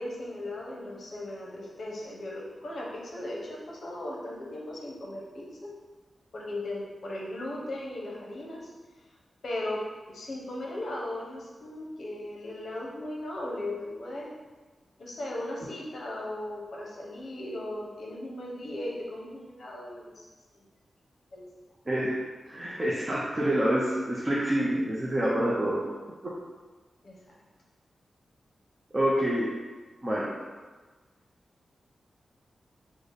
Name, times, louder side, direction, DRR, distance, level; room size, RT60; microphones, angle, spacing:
voice 1, 0.0-5.7 6.3-8.7 9.4-9.8 10.1-14.3 15.0-20.2 20.5-20.6 21.3-21.4 27.0-27.1, left 1 dB, 60° left, -3 dB, 0.7 m, -37 dB
voice 2, 21.9-22.2 22.5-25.8 28.9-29.5 30.0-30.3, right 1 dB, 20° right, -6 dB, 0.5 m, -27 dB
3.8 x 2.0 x 3.4 m, 1.3 s
wide cardioid pair, 120°, 0 cm